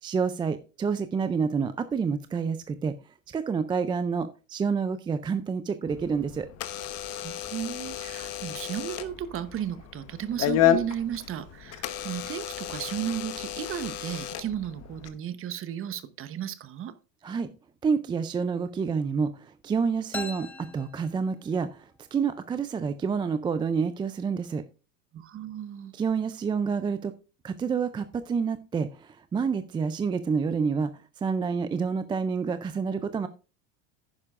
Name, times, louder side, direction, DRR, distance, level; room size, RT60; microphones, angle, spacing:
voice 1, 0.0-2.9 3.3-6.5 17.2-17.5 17.8-24.6 25.9-27.1 27.4-33.3, right 5 dB, 10° right, 0.3 m, -28 dB
Door / Alarm, 5.9-15.1, left 11 dB, 40° left, 1.1 m, -31 dB
voice 2, 7.2-17.0 25.1-25.9, right 10 dB, 35° right, 1.0 m, -34 dB
sound 1, 20.1-21.8, left 2 dB, 5° left, 0.7 m, -40 dB
11.0 x 9.7 x 2.5 m
supercardioid pair, 120°, 40 cm